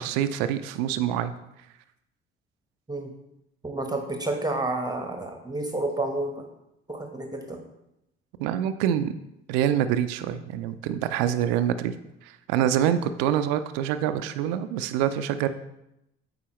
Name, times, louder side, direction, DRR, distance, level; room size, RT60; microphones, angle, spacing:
voice 1, 0.0-1.3 8.4-9.1 9.5-11.9 12.2-15.5, right 10 dB, 75° right, 11 dB, 0.5 m, -26 dB
voice 2, 3.6-6.4 6.9-7.6, right 2 dB, 15° right, 4 dB, 1.0 m, -30 dB
8.6 x 4.1 x 3.0 m, 0.86 s
hypercardioid pair, 55°, 30 cm